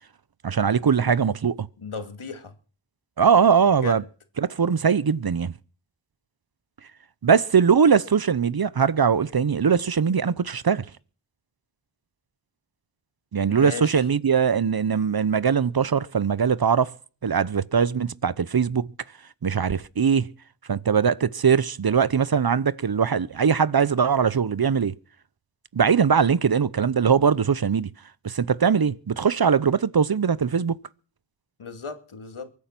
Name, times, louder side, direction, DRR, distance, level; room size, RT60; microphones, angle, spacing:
voice 1, 0.4-1.7 3.2-4.0 4.4-5.5 7.2-10.9 13.3-16.9 17.2-18.9 19.4-20.3 20.7-24.9 25.7-27.9 28.2-30.8, right 6 dB, 50° right, 0.8 m, -21 dB
voice 2, 1.8-2.5 3.8-4.0 13.5-14.1 31.6-32.5, left 5 dB, 80° left, 2.6 m, -35 dB
23.5 x 9.8 x 6.0 m
cardioid pair, 50°, 48 cm